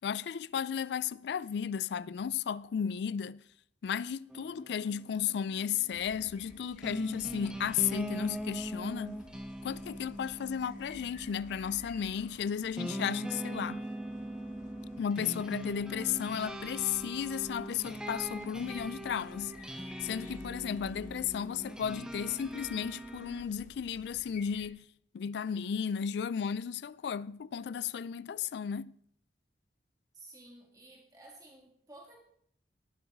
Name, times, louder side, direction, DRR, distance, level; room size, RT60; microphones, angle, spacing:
voice 1, 0.0-3.4 3.8-9.2 9.6-13.9 15.0-19.6 20.0-24.9 25.1-29.0, left 8 dB, 70° left, 0.3 m, -34 dB
sound 1, 4.3-23.5, right 1 dB, 5° right, 0.7 m, -41 dB
sound 2, 5.9-24.7, left 2 dB, 45° left, 1.3 m, -55 dB
voice 2, 30.1-32.2, right 2 dB, 20° right, 2.6 m, -53 dB
19.0 x 7.1 x 3.6 m
head